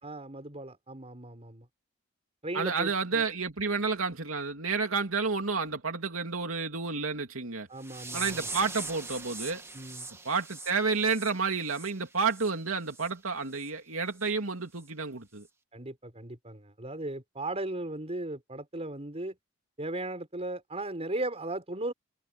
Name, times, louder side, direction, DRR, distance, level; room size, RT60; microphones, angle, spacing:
voice 1, 0.0-1.7 2.4-3.3 7.7-8.5 9.7-10.1 15.7-19.4 19.8-21.9, right 2 dB, 30° right, 5.5 m, -37 dB
voice 2, 2.5-7.7 8.1-9.6 10.2-15.5, right 4 dB, 85° right, 2.8 m, -30 dB
sound 1, 7.8-12.5 12.9-13.1 13.5-13.7 14.2-14.3 14.8-14.9, right 3 dB, 15° right, 2.0 m, -42 dB
head